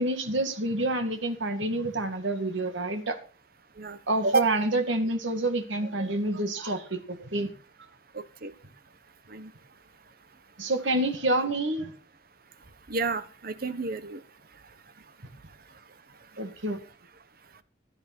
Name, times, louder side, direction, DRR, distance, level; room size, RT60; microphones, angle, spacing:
voice 1, 0.0-3.2 4.1-7.5 10.6-11.9 16.4-16.8, right 2 dB, 85° right, 6 dB, 2.3 m, -28 dB
voice 2, 8.1-8.5 9.3-9.5 12.9-14.2, right 3 dB, 50° right, 12 dB, 1.2 m, -29 dB
15.5 x 12.5 x 4.4 m, 0.37 s
head